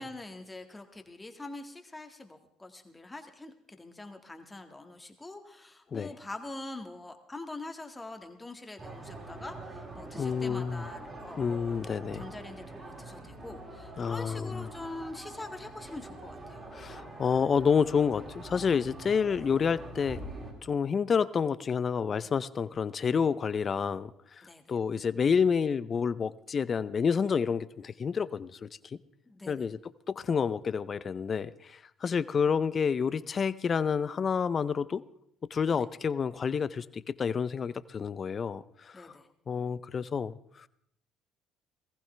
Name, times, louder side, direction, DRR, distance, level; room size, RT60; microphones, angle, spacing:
voice 1, 0.0-16.6 24.4-24.8 29.3-29.7 35.7-35.9 38.9-39.3, left 2 dB, 15° left, 6 dB, 1.9 m, -44 dB
sound 1, 8.8-20.5, right 2 dB, 35° right, 4.8 m, -45 dB
voice 2, 10.1-10.9 11.4-12.3 14.0-14.7 16.7-20.2 20.6-24.4 24.7-29.0 29.5-29.8 30.1-35.0 35.5-39.1 39.5-40.7, left 6 dB, 40° left, 17 dB, 0.6 m, -29 dB
19.0 x 15.0 x 3.4 m, 0.74 s
supercardioid pair, 70°, 0 cm